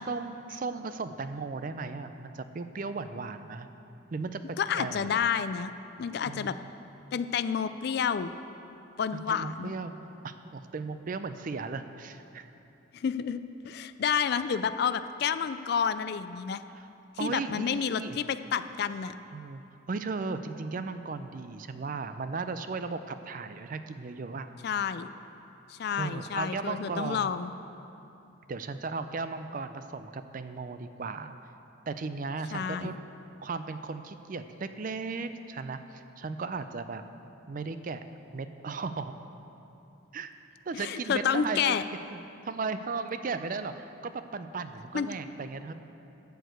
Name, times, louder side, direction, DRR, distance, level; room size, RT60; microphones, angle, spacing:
voice 1, 0.0-3.7 4.1-5.2 6.3-6.6 9.3-12.5 16.8-16.9 17.2-18.2 19.3-19.6 19.9-24.5 26.0-27.3 28.5-31.3 31.9-33.0 33.4-37.0 37.5-38.0 38.3-39.2 40.1-40.3 40.7-41.8 42.1-42.2 42.5-45.7, right 4 dB, 40° right, 10 dB, 0.4 m, -36 dB
voice 2, 4.6-5.7 6.0-6.6 7.1-8.3 9.0-9.7 12.9-13.4 13.6-16.6 17.2-19.1 24.6-25.1 25.7-27.5 32.5-33.0 40.7-41.8 44.9-45.1, left 7 dB, 50° left, 12 dB, 0.3 m, -29 dB
12.5 x 4.7 x 7.8 m, 2.9 s
head